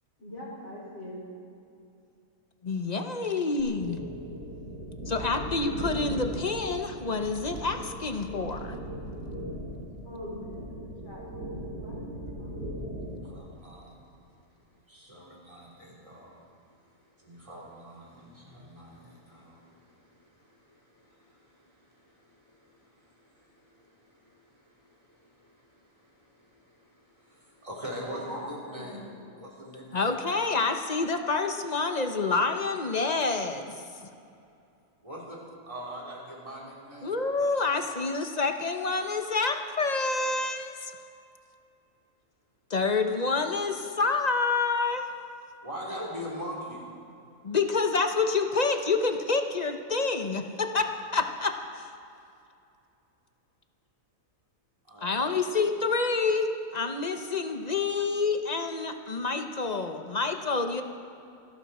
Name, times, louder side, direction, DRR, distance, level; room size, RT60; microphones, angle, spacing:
voice 1, 0.2-1.2 10.0-12.9 28.0-29.2, left 1 dB, 55° left, -5 dB, 5.4 m, -43 dB
voice 2, 2.6-4.0 5.1-8.8 29.9-33.8 37.0-40.9 42.7-45.1 47.4-51.9 55.0-60.8, left 4 dB, 35° left, 6 dB, 0.8 m, -28 dB
sound 1, 3.6-13.3, equal, 85° right, 3.6 m, -38 dB
voice 3, 13.1-14.2 14.9-16.5 16.9-29.1 29.4-30.2 35.0-35.4 35.7-37.6 45.6-46.8 54.9-55.4, equal, 25° right, -4 dB, 3.6 m, -44 dB
26.5 x 11.5 x 4.3 m, 2.6 s
omnidirectional pair, 1.5 m